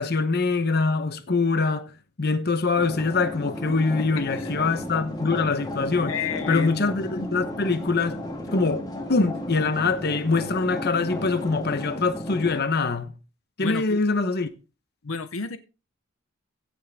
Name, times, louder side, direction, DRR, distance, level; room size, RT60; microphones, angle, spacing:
voice 1, 0.0-1.9 2.2-6.2 6.5-8.2 8.5-13.1 13.6-14.5, left 4 dB, 50° left, 1.0 m, -24 dB
sound 1, 2.8-12.6, left 1 dB, 20° left, 2.3 m, -34 dB
voice 2, 4.0-4.5 6.1-6.7 13.6-14.0 15.0-15.6, left 5 dB, 75° left, 0.8 m, -31 dB
16.5 x 6.2 x 3.5 m
head